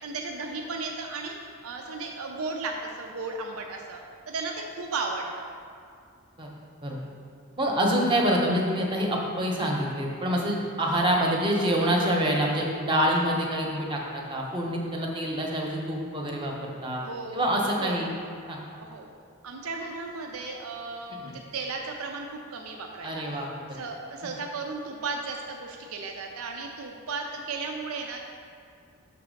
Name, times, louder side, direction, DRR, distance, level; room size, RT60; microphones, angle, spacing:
voice 1, 0.0-4.0 4.3-5.5 17.0-18.0 18.7-19.1 19.4-28.2, right 3 dB, 80° right, 2 dB, 0.5 m, -35 dB
voice 2, 7.6-17.0 17.3-18.1 18.5-18.6 21.2-21.4 23.0-23.5, equal, 25° right, -1 dB, 0.8 m, -26 dB
5.9 x 4.0 x 6.3 m, 2.3 s
head